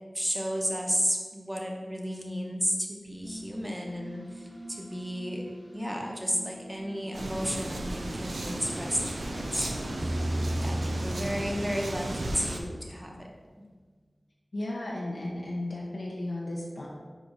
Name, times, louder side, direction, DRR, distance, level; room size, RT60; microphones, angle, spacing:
voice 1, 0.1-5.4 5.7-10.2 10.6-13.3, equal, 10° right, 0 dB, 1.0 m, -33 dB
sound 1, 3.0-13.5, equal, 35° left, 1.1 m, -46 dB
sound 2, 7.1-12.6, right 1 dB, 85° right, 0.6 m, -35 dB
sound 3, 10.0-12.4, right 1 dB, 40° right, 0.4 m, -33 dB
voice 2, 14.5-16.9, left 1 dB, 75° left, -5 dB, 0.9 m, -34 dB
5.1 x 4.7 x 4.0 m, 1.4 s
wide cardioid pair, 50°, 0 cm